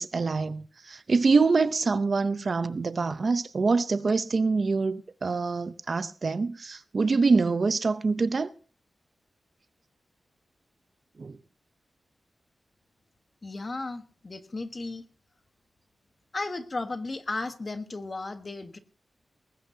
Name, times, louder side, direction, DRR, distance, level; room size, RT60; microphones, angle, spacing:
voice 1, 0.0-8.5 11.2-11.4, right 4 dB, 45° right, 0.6 m, -25 dB
voice 2, 13.4-15.0 16.3-18.8, left 3 dB, 30° left, 1.2 m, -34 dB
19.5 x 16.5 x 2.8 m
wide cardioid pair, 150°, 0 cm